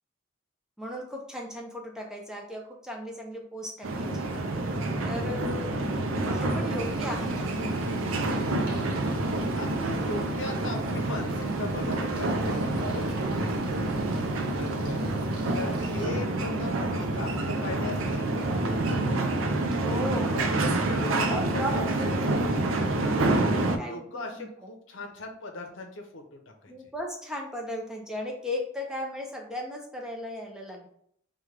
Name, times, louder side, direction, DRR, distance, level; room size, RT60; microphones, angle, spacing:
voice 1, 0.8-4.4 5.1-5.8 6.3-7.5 19.8-20.7 21.3-22.5 23.8-24.5 26.7-30.9, left 1 dB, 5° right, 0 dB, 0.5 m, -36 dB
sound 1, 3.8-23.8, right 2 dB, 80° right, 0.5 m, -28 dB
Bird, 6.8-16.0, right 1 dB, 45° right, 1.0 m, -49 dB
voice 2, 9.6-13.5 14.1-15.1 15.5-19.3 20.2-22.1 22.5-22.7 23.8-26.7, left 2 dB, 70° left, 3 dB, 0.7 m, -39 dB
4.9 x 2.3 x 3.2 m, 0.68 s
head